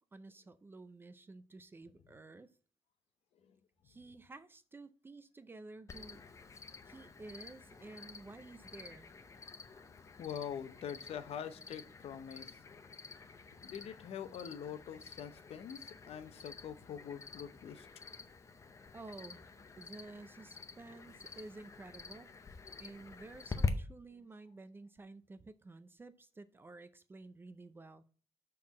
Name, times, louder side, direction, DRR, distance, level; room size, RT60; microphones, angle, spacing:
voice 1, 0.0-2.5 3.8-6.2 6.9-9.1 18.9-22.3 22.8-28.0, right 3 dB, 20° right, 0.5 m, -52 dB
Cricket, 5.9-23.7, left 5 dB, 25° left, 0.6 m, -46 dB
voice 2, 9.7-12.6 13.6-17.9 24.2-24.3, left 8 dB, 65° left, 0.7 m, -45 dB
5.7 x 4.5 x 6.1 m
cardioid pair, 150°, 11 cm